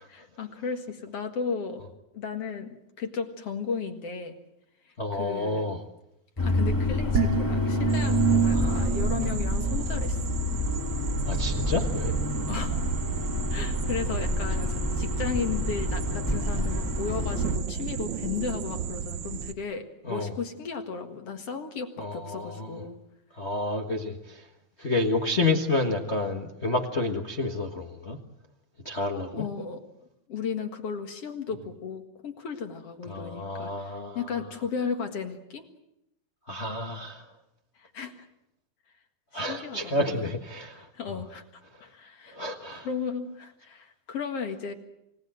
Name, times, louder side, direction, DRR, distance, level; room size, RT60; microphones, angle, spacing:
voice 1, 0.0-1.8 2.1-4.3 5.1-5.6 6.4-10.2 12.3-12.7 13.5-22.9 29.3-29.8 30.3-35.6 37.8-38.3 39.3-40.2 40.9-41.4 41.8-42.4 42.8-44.7, left 6 dB, 55° left, 5 dB, 2.7 m, -35 dB
voice 2, 5.0-5.8 8.5-9.8 11.3-12.1 20.0-20.3 22.0-22.8 23.3-24.5 24.8-28.2 28.8-29.4 33.1-34.5 36.5-37.3 39.3-41.2 42.3-42.9, left 2 dB, 35° left, 2 dB, 1.1 m, -30 dB
sound 1, 6.4-17.6, left 1 dB, 10° left, 1.2 m, -28 dB
sound 2, 7.1-10.5, right 10 dB, 45° right, 2.7 m, -28 dB
sound 3, 7.9-19.5, right 8 dB, 75° right, 1.0 m, -35 dB
29.0 x 18.0 x 7.9 m, 0.82 s
omnidirectional pair, 3.5 m